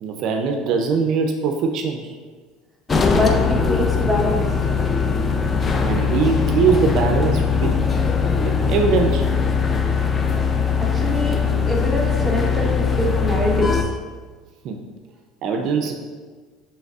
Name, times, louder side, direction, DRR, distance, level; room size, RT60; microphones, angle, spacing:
voice 1, 0.0-2.0 5.8-7.7 8.4-9.3 14.6-14.8 15.4-15.9, right 5 dB, 55° right, 3 dB, 0.4 m, -21 dB
sound 1, 2.9-13.8, left 5 dB, 25° left, 0.3 m, -20 dB
voice 2, 3.0-4.5 10.8-11.4 11.7-13.9, equal, ahead, -3 dB, 0.8 m, -24 dB
5.1 x 3.2 x 2.3 m, 1.4 s
supercardioid pair, 120°, 0 cm